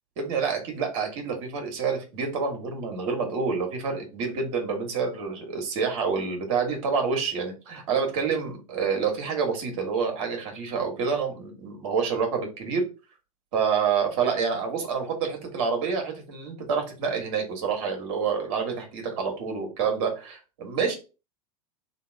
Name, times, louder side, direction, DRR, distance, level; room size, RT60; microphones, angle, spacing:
voice 1, 0.2-12.8 13.5-20.9, right 5 dB, 50° right, 3 dB, 1.4 m, -28 dB
2.9 x 2.9 x 4.3 m, 0.32 s
figure-of-eight pair, 85°, 18 cm